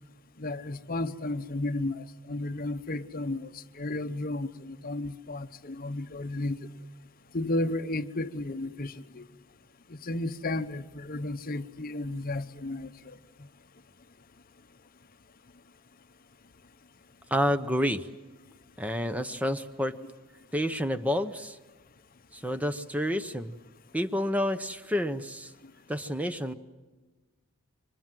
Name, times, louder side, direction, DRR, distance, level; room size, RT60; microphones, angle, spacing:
voice 1, 0.4-6.7 7.3-9.2 9.9-13.2, left 2 dB, 40° left, 0.8 m, -33 dB
voice 2, 17.3-18.1 18.8-20.0 20.5-21.6 22.3-23.6 23.9-25.5 25.9-26.5, equal, 5° right, 0.7 m, -29 dB
28.0 x 25.0 x 7.6 m
head